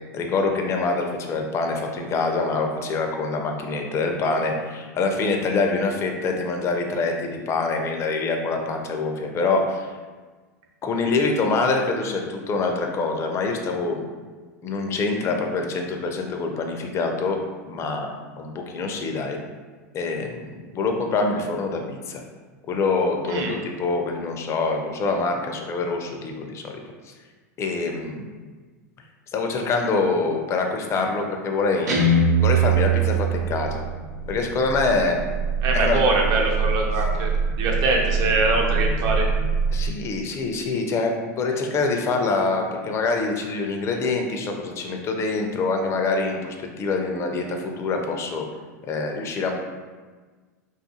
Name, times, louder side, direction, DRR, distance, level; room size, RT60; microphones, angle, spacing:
voice 1, 0.1-9.9 10.8-14.0 14.6-17.4 17.7-18.1 18.4-19.4 19.9-22.2 22.7-27.1 27.6-28.3 29.3-32.1 32.4-33.8 34.3-35.2 35.7-36.0 39.7-48.5 48.9-49.5, left 3 dB, 30° left, 3 dB, 0.4 m, -25 dB
Guitar, 31.9-33.9, right 3 dB, 90° right, 0.7 m, -20 dB
sound 1, 33.5-39.9, right 5 dB, 75° left, 0.7 m, -26 dB
voice 2, 35.6-37.3 37.6-39.2, right 2 dB, 50° right, 0 dB, 0.6 m, -23 dB
2.4 x 2.4 x 2.7 m, 1.4 s
hypercardioid pair, 105°, 9 cm